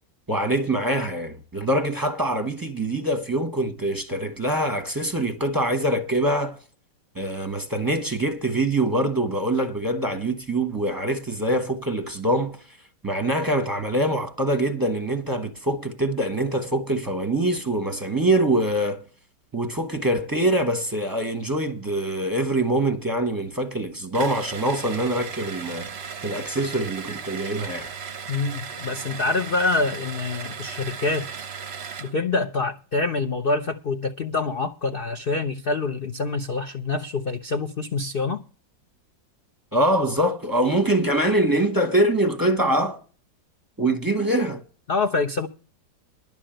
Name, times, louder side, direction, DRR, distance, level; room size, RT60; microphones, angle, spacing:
voice 1, 0.3-6.6 7.1-12.6 13.0-19.0 19.5-25.9 26.2-27.9 39.7-43.0 43.8-44.6, right 1 dB, 15° right, 0.8 m, -24 dB
sound 1, 24.1-32.2, right 6 dB, 50° right, 0.7 m, -36 dB
voice 2, 28.3-31.3 32.0-38.4 44.9-45.5, left 3 dB, 75° left, 0.5 m, -26 dB
11.0 x 5.9 x 9.0 m
omnidirectional pair, 2.0 m